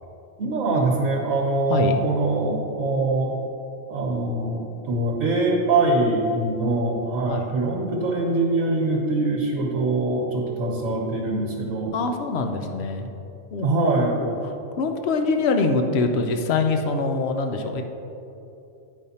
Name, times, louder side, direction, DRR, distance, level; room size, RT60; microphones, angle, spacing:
voice 1, 0.4-3.4 3.9-11.9 13.6-14.2, right 2 dB, 80° right, -2 dB, 1.4 m, -23 dB
voice 2, 11.9-13.1 13.5-17.8, left 3 dB, 60° left, 5 dB, 0.9 m, -24 dB
9.6 x 5.2 x 4.2 m, 2.9 s
omnidirectional pair, 1.4 m